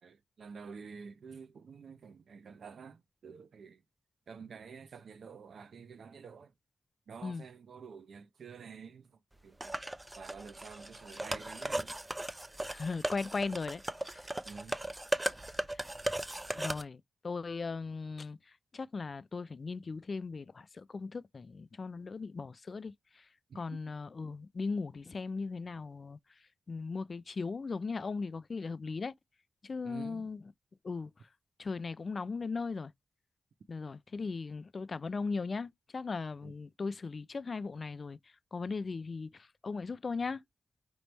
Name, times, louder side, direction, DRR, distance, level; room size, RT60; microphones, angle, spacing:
voice 1, 0.0-3.8 4.3-6.5 7.1-9.8 10.1-11.9 14.5-14.8 23.5-23.9 29.8-30.3 36.4-36.6, right 6 dB, 90° right, 0.5 m, -49 dB
sound 1, 9.6-16.8, right 1 dB, 15° right, 0.4 m, -37 dB
voice 2, 12.6-13.8 14.1-14.3 15.7-15.8 16.6-18.4 18.7-22.9 23.6-26.2 26.7-29.1 29.6-30.4 30.8-31.1 31.6-32.9 33.7-38.2 38.5-40.4, left 4 dB, 50° left, 0.3 m, -38 dB
5.2 x 3.0 x 3.2 m
wide cardioid pair, 110°, 0 cm